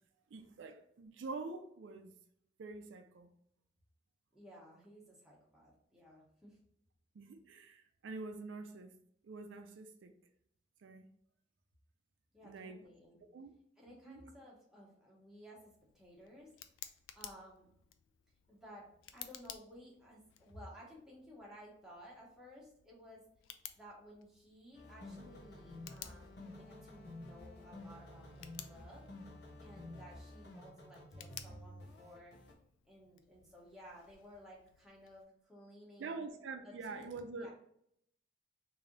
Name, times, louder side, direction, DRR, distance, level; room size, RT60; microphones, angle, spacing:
voice 1, 0.3-2.1 2.6-3.3 7.2-8.9 9.2-10.1 10.8-11.1 12.4-12.8 13.3-13.5 14.1-14.2 36.0-37.5, right 3 dB, 75° right, 0.4 m, -46 dB
voice 2, 4.3-6.6 12.3-13.2 13.8-16.5 17.1-17.7 18.5-23.2 23.7-29.0 29.6-32.4 32.8-36.2 36.6-37.1 37.4-37.5, equal, 5° right, 1.0 m, -56 dB
Tick, 15.6-35.2, left 10 dB, 85° left, 0.3 m, -56 dB
sound 1, 24.7-32.5, left 1 dB, 55° left, 0.7 m, -51 dB
3.2 x 2.7 x 3.8 m
head